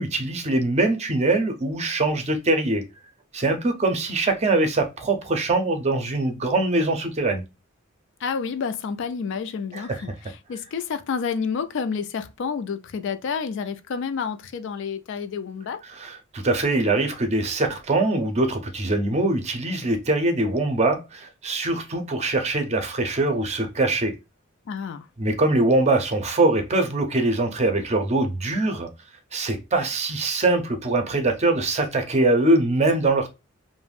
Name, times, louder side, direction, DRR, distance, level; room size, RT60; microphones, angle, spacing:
voice 1, 0.0-2.8 3.3-7.4 9.7-10.0 15.9-24.1 25.2-28.9 29.3-33.3, right 2 dB, 35° right, 0.5 m, -23 dB
voice 2, 8.2-15.8 24.7-25.1, left 6 dB, 65° left, 0.3 m, -29 dB
2.4 x 2.1 x 3.3 m
head